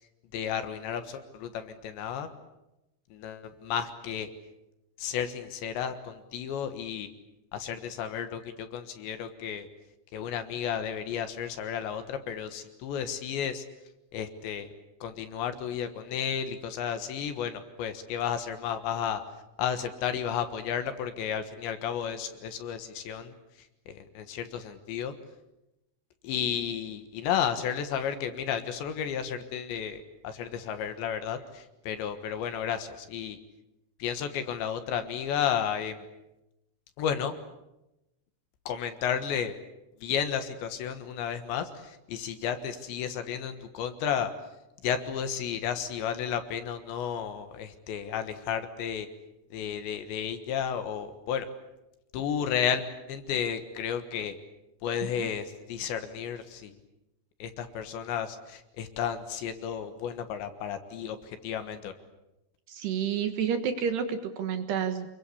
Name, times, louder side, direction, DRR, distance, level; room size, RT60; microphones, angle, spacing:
voice 1, 0.3-2.3 3.1-4.3 5.0-7.1 7.5-9.7 10.1-13.6 14.1-14.7 15.0-19.2 19.6-23.3 23.9-25.1 26.2-33.4 34.0-36.1 37.0-37.4 38.7-39.6 40.0-44.3 44.8-49.1 49.5-51.5 52.1-54.4 54.8-56.8 57.4-61.9, left 8 dB, 70° left, 9 dB, 3.4 m, -32 dB
voice 2, 62.7-65.1, right 7 dB, 65° right, 8 dB, 3.1 m, -30 dB
28.5 x 22.5 x 8.5 m, 0.94 s
omnidirectional pair, 5.9 m